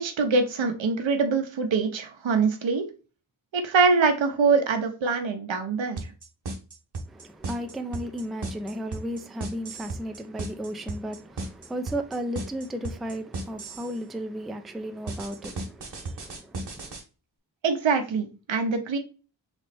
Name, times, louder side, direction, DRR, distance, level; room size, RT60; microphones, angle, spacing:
voice 1, 0.0-2.8 3.5-6.1 17.6-19.0, right 4 dB, 85° right, 0.9 m, -24 dB
sound 1, 6.0-14.0 15.1-17.0, right 3 dB, 60° right, 1.3 m, -35 dB
voice 2, 7.1-17.0, equal, ahead, 0.3 m, -35 dB
3.5 x 3.1 x 4.2 m
wide cardioid pair, 100°, 45 cm